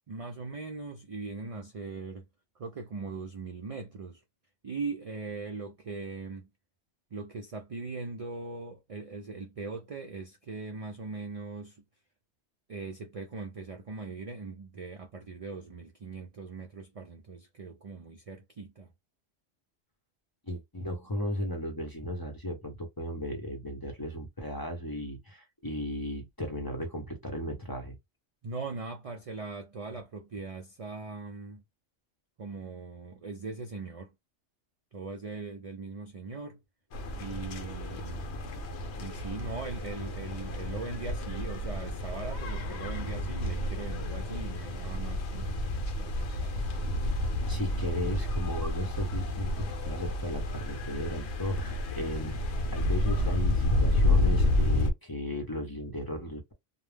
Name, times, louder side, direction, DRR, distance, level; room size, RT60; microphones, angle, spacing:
voice 1, 0.1-2.2 2.6-4.2 4.6-6.5 7.1-11.8 12.7-18.9 28.4-31.6 32.4-34.1 34.9-36.6 37.1-38.3 39.0-45.6 45.9-46.5, right 3 dB, 60° right, 0.3 m, -40 dB
voice 2, 20.5-28.0 47.5-52.4 52.7-56.5, equal, 25° left, 0.5 m, -35 dB
sound 1, 36.9-54.9, left 1 dB, 75° left, 0.9 m, -30 dB
2.2 x 2.0 x 3.2 m
omnidirectional pair, 1.2 m